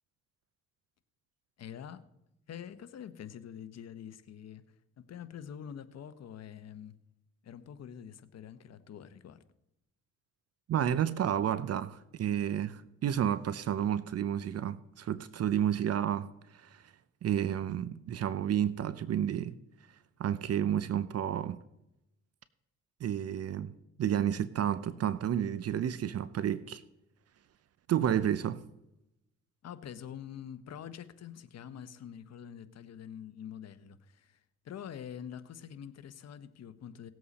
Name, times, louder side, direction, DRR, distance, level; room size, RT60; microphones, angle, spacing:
voice 1, 1.6-2.1 2.5-6.9 7.4-9.4 29.6-37.1, left 9 dB, 60° left, 1.0 m, -46 dB
voice 2, 10.7-16.3 16.5-16.8 17.2-19.5 20.2-21.6 23.0-23.7 24.0-26.8 27.9-28.6, right 10 dB, 55° right, 0.6 m, -31 dB
18.0 x 7.8 x 4.2 m
cardioid pair, 90°, 30 cm